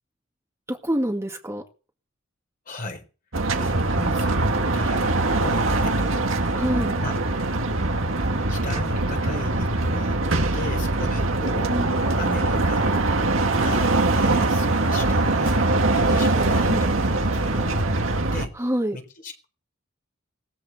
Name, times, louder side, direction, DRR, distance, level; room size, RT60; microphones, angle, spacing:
voice 1, 0.7-1.6 6.5-7.0 11.7-11.9 16.6-16.8 18.6-19.0, equal, 15° right, 2.0 m, -26 dB
voice 2, 2.7-3.1 3.6-4.4 4.7-6.6 7.0-7.2 8.5-10.2 10.5-11.8 12.1-12.9 13.6-18.6 18.9-19.5, left 2 dB, 45° left, 4.1 m, -37 dB
sound 1, 3.3-18.5, right 2 dB, 75° right, 1.8 m, -22 dB
19.0 x 14.5 x 4.2 m
head